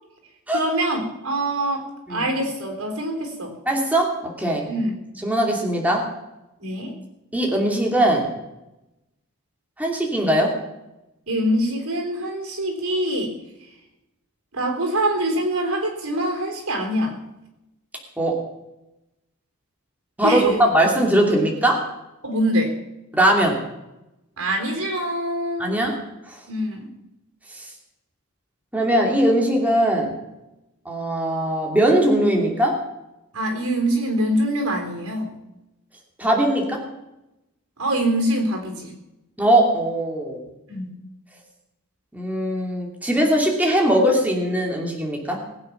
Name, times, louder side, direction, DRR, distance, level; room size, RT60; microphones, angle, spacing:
voice 1, 0.5-3.5 4.7-4.9 6.6-6.9 11.3-13.3 14.5-17.1 20.2-20.6 22.2-22.7 24.4-25.8 26.5-26.9 33.3-35.3 37.8-38.9 40.7-40.9, right 1 dB, 90° right, 3 dB, 3.9 m, -24 dB
voice 2, 3.7-4.1 4.4-4.6 5.2-6.0 7.3-8.3 9.8-10.5 18.2-18.4 20.2-21.8 23.1-23.6 25.6-26.0 26.3-26.4 28.7-30.1 30.8-32.8 36.2-36.8 39.4-40.4 42.1-45.4, right 1 dB, 5° right, -1 dB, 2.7 m, -20 dB
20.5 x 8.9 x 5.9 m, 0.94 s
head